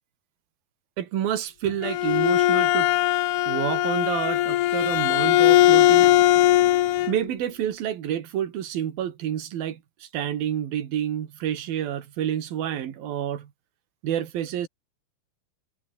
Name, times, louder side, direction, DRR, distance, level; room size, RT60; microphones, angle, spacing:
voice 1, 1.0-2.9 3.5-6.1 7.1-13.5 14.0-14.7, right 10 dB, 70° right, 3.8 m, -29 dB
Bowed string instrument, 1.7-7.2, left 14 dB, 85° left, 3.3 m, -19 dB
omnidirectional pair, 4.5 m